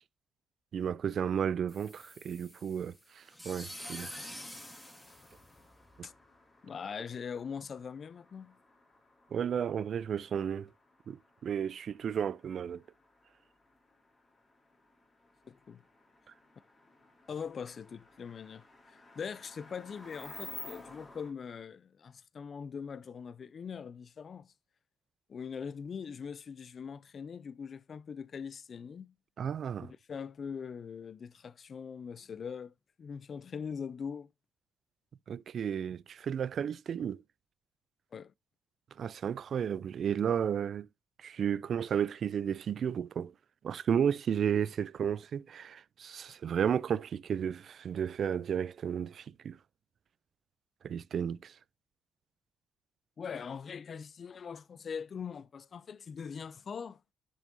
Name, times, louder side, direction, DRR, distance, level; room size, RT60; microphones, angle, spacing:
voice 1, 0.7-4.1 6.0-6.1 9.3-10.7 11.1-11.2 11.4-12.8 29.4-29.9 35.3-37.2 39.0-40.9 41.2-43.3 43.6-49.6 50.8-51.5, right 8 dB, 55° right, 0.4 m, -33 dB
sound 1, 1.7-6.0, left 1 dB, 5° left, 2.0 m, -47 dB
sound 2, 3.8-21.3, left 2 dB, 25° left, 3.1 m, -54 dB
voice 2, 6.6-8.5 15.5-15.8 17.3-18.7 19.2-24.5 25.3-29.1 29.8-34.3 38.1-38.3 53.2-57.0, left 6 dB, 45° left, 0.4 m, -42 dB
10.5 x 6.2 x 2.7 m
cardioid pair, 90°, 0 cm